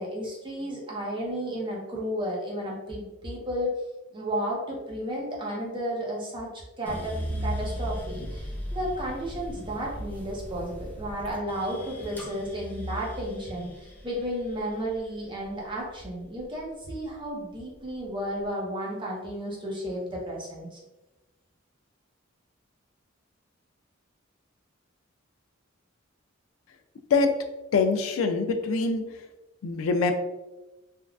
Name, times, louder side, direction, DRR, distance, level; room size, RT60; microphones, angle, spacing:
voice 1, 0.0-3.7 4.1-6.5 6.8-7.1 7.4-20.8, equal, 25° right, -3 dB, 0.7 m, -33 dB
sound 1, 6.9-17.1 17.5-18.3, equal, 10° left, 0.5 m, -37 dB
voice 2, 27.7-29.1 29.6-30.1, left 4 dB, 85° left, 7 dB, 0.4 m, -24 dB
3.5 x 2.3 x 2.3 m, 1.0 s
head